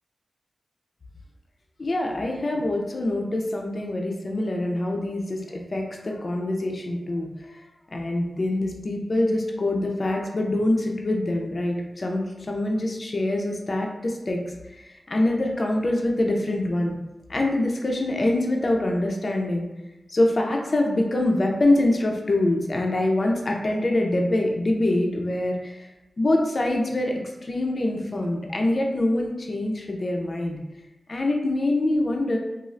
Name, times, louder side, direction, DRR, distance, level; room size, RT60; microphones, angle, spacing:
voice 1, 1.8-7.6 7.9-14.4 14.7-17.0 17.3-19.7 20.1-25.9 26.2-27.1 27.4-30.6 31.1-32.4, left 1 dB, 45° left, 1 dB, 0.3 m, -24 dB
3.0 x 2.3 x 2.5 m, 1.0 s
wide cardioid pair, 95°, 0 cm